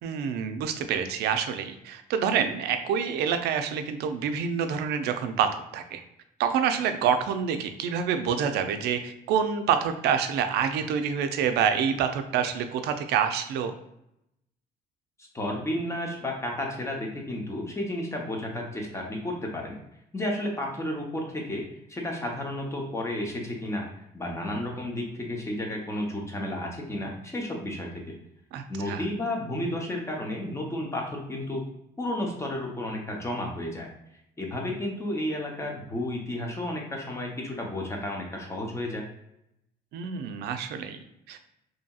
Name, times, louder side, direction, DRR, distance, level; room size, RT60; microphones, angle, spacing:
voice 1, 0.0-6.0 6.4-13.7 28.5-29.0 39.9-41.4, right 7 dB, 75° right, 8 dB, 0.4 m, -27 dB
voice 2, 15.3-19.8 20.1-23.9 24.1-28.2 28.7-31.7 32.0-33.9 34.4-39.0, left 1 dB, 15° left, 0 dB, 0.6 m, -32 dB
2.7 x 2.7 x 2.2 m, 0.80 s
cardioid pair, 110°, 17 cm